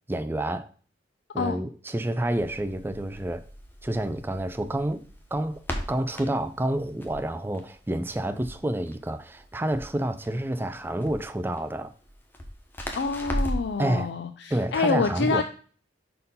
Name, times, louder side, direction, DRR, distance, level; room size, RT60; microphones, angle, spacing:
voice 1, 0.1-0.7 1.3-3.4 3.8-11.9 13.8-14.1 14.5-15.4, right 1 dB, 10° right, 0.3 m, -29 dB
Crackle, 2.2-13.8, equal, 10° left, 0.9 m, -38 dB
voice 2, 12.9-15.4, left 4 dB, 65° left, 0.4 m, -27 dB
5.5 x 4.3 x 5.3 m
head